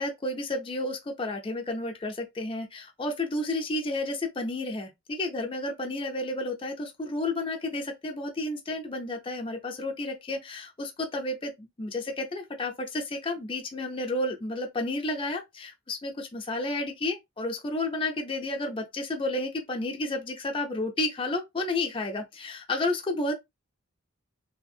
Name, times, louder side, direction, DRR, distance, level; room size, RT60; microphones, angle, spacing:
voice 1, 0.0-23.3, left 2 dB, 25° left, 0.4 m, -31 dB
2.7 x 2.4 x 2.6 m
head